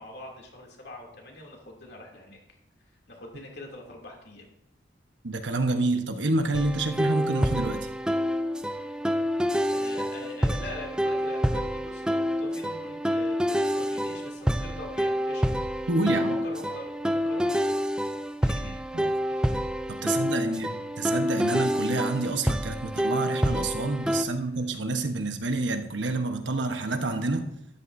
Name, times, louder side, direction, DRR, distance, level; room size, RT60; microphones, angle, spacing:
voice 1, 0.0-2.4 3.1-4.5 9.7-17.8 18.4-18.8 19.3-19.6 20.0-20.1 24.2-24.4, left 1 dB, 60° left, 0 dB, 2.9 m, -43 dB
voice 2, 5.2-7.9 15.9-16.4 18.9-19.1 20.0-27.5, right 2 dB, 80° right, 6 dB, 1.2 m, -28 dB
sound 1, 6.5-24.2, equal, 5° right, 0.4 m, -28 dB
13.0 x 12.0 x 2.7 m, 0.81 s
head